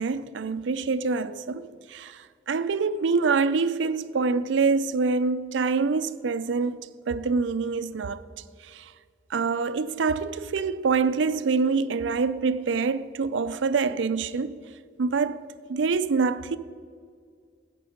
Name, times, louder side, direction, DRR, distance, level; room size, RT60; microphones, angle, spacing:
voice 1, 0.0-8.2 8.6-8.9 9.3-14.6 15.0-16.6, right 4 dB, 85° right, 0.5 m, -26 dB
14.0 x 8.6 x 5.0 m
head